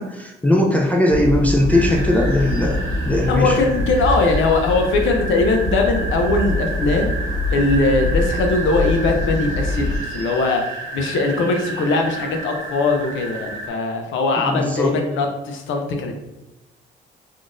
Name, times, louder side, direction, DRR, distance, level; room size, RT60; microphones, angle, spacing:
voice 1, 0.0-3.6 14.4-15.0, left 1 dB, 5° left, 0 dB, 0.4 m, -19 dB
sound 1, 1.1-10.0, left 2 dB, 50° left, 1.5 m, -24 dB
sound 2, 1.7-13.7, right 3 dB, 70° right, 0.8 m, -32 dB
voice 2, 3.3-7.1 7.5-10.6 10.9-16.3, left 3 dB, 80° left, 3 dB, 0.6 m, -20 dB
3.7 x 2.4 x 2.5 m, 0.94 s
cardioid pair, 90°, 20 cm